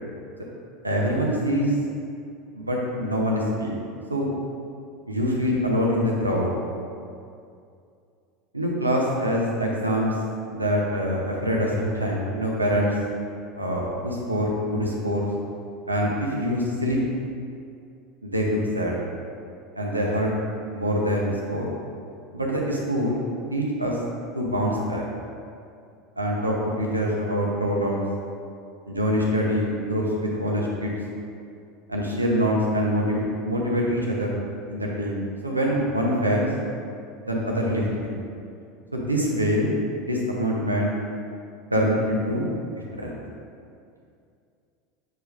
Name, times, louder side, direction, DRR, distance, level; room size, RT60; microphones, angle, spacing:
voice 1, 0.8-1.8 2.5-3.7 4.1-4.3 5.1-6.5 8.5-10.2 10.5-12.9 13.5-15.3 15.9-17.0 18.2-19.0 19.7-20.3 20.7-21.7 22.3-23.2 23.5-24.0 24.3-25.0 26.2-28.1 28.9-30.9 31.9-34.3 34.7-36.5 37.2-38.2 38.9-40.9 41.7-42.5 42.7-43.2, equal, 90° right, -2 dB, 0.8 m, -25 dB
7.8 x 4.9 x 2.5 m, 2.4 s
figure-of-eight pair, 75°, 0 cm